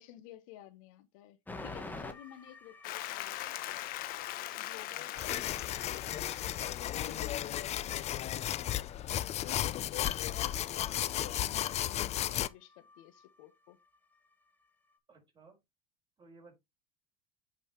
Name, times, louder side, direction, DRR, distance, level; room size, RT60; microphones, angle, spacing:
voice 1, 0.0-3.6 4.6-5.9 6.1-8.5 9.4-13.8, left 14 dB, 75° left, 1.3 m, -51 dB
sound 1, 1.5-15.0, left 2 dB, 10° left, 1.6 m, -53 dB
Applause, 2.8-7.9, left 15 dB, 55° left, 0.9 m, -41 dB
voice 2, 4.9-5.2 15.1-15.6 16.2-16.5, right 4 dB, 25° right, 5.2 m, -58 dB
sound 2, 5.2-12.5, left 12 dB, 40° left, 0.5 m, -34 dB
8.3 x 5.5 x 3.1 m
supercardioid pair, 100°, 17 cm